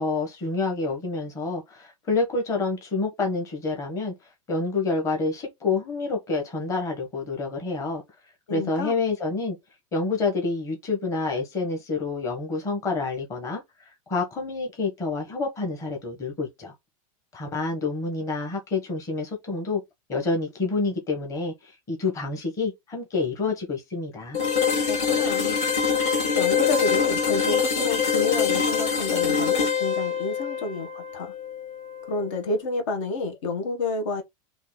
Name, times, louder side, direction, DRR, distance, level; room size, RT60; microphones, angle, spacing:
voice 1, 0.0-4.1 4.5-8.0 8.5-9.6 9.9-13.6 14.1-16.7 17.3-19.8 20.1-24.4, left 3 dB, 20° left, 1.2 m, -28 dB
voice 2, 8.5-8.9 24.9-25.6 26.3-31.3 32.1-34.2, left 3 dB, 65° left, 1.5 m, -29 dB
sound 1, 24.3-32.2, left 6 dB, 45° left, 2.3 m, -24 dB
4.0 x 2.9 x 3.9 m
supercardioid pair, 170°, 17 cm